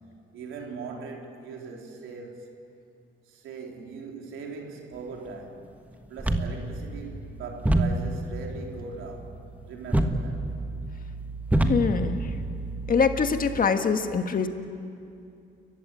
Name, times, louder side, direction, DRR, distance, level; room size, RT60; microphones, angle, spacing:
voice 1, 0.3-2.5 3.3-5.6 6.1-9.4 9.7-10.5, right 4 dB, 85° right, 1 dB, 3.5 m, -40 dB
sound 1, 6.2-13.6, right 1 dB, 10° right, 1.5 m, -29 dB
voice 2, 11.7-12.3 12.9-14.5, left 5 dB, 45° left, 7 dB, 1.6 m, -24 dB
29.5 x 15.0 x 9.1 m, 2.5 s
cardioid pair, 90°, 20 cm